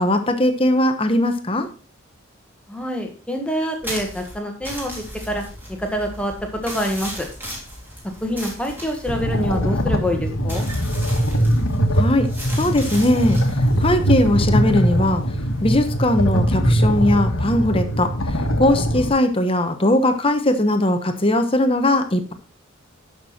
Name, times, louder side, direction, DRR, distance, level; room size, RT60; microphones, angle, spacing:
voice 1, 0.0-1.7 11.9-12.3 12.5-13.4 13.8-15.2 15.6-22.3, left 1 dB, 25° left, 8 dB, 1.1 m, -19 dB
voice 2, 2.7-5.4 5.8-7.3 8.2-10.7, equal, 5° left, 3 dB, 1.8 m, -26 dB
sound 1, 3.8-16.3, equal, 10° right, 3.3 m, -37 dB
sound 2, 9.1-19.1, equal, 85° left, 1.6 m, -21 dB
12.0 x 6.3 x 4.3 m, 0.36 s
head